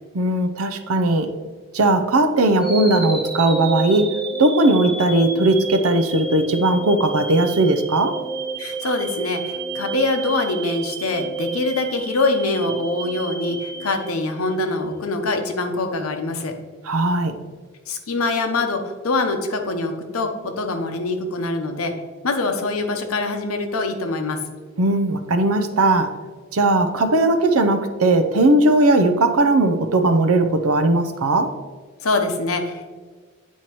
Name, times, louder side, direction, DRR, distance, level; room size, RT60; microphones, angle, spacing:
voice 1, 0.1-1.3 1.7-4.1 4.4-8.2 16.8-17.3 24.8-26.1 26.5-31.5, right 2 dB, 90° right, 8 dB, 0.6 m, -18 dB
sound 1, 2.6-14.7, right 3 dB, 25° right, 0.8 m, -30 dB
voice 2, 8.6-16.5 17.9-21.9 22.2-24.4 32.0-32.9, left 2 dB, 85° left, 6 dB, 0.8 m, -24 dB
9.4 x 4.4 x 3.0 m, 1.5 s
head